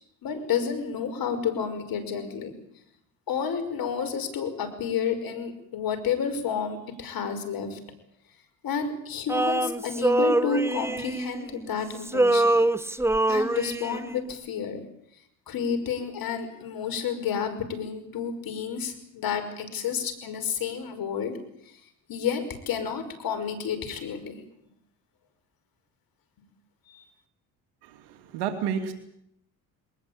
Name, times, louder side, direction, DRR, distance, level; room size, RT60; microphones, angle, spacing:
voice 1, 0.2-2.5 3.3-7.8 8.6-12.6 13.3-14.8 15.5-21.3 21.7-21.8 22.1-24.4 26.9-27.0, left 6 dB, 60° left, 8 dB, 5.7 m, -30 dB
Male singing, 9.3-11.7 12.0-14.2, right 2 dB, 5° right, 1.0 m, -24 dB
voice 2, 27.8-28.9, right 7 dB, 90° right, 7 dB, 2.8 m, -31 dB
22.5 x 19.5 x 8.9 m, 0.74 s
supercardioid pair, 80°, 39 cm